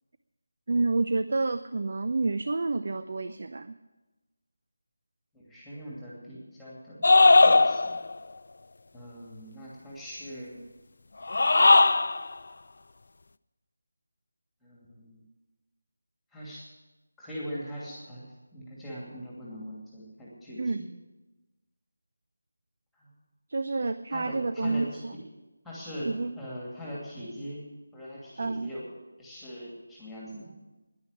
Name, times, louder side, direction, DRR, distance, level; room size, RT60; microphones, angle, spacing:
voice 1, 0.7-3.8 20.6-20.8 23.5-25.1 26.0-26.3 28.4-28.7, right 3 dB, 55° right, 12 dB, 0.5 m, -29 dB
voice 2, 5.3-7.8 8.9-10.6 14.6-15.2 16.3-16.6 17.2-18.3 18.5-20.9 22.9-23.1 24.1-25.0 25.6-27.6 27.9-28.9 29.2-30.5, equal, ahead, -7 dB, 2.6 m, -41 dB
sound 1, 7.0-8.1 11.2-12.2, left 3 dB, 60° left, 0.4 m, -18 dB
10.5 x 9.5 x 9.7 m, 1.1 s
figure-of-eight pair, 170°, 0 cm